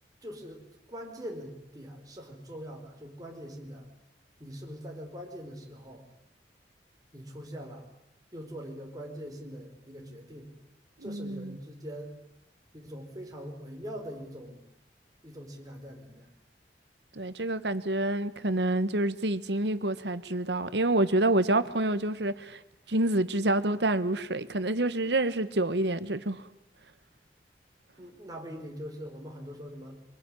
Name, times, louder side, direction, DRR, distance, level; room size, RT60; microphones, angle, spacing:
voice 1, 0.2-3.9 4.4-6.1 7.1-7.9 8.3-10.5 11.0-12.1 12.7-14.7 15.2-16.3 28.0-30.0, equal, 20° right, 4.8 m, -42 dB
voice 2, 11.0-11.6 17.1-22.6 22.9-26.4, right 1 dB, 80° right, 1.4 m, -27 dB
23.5 x 23.5 x 10.0 m
head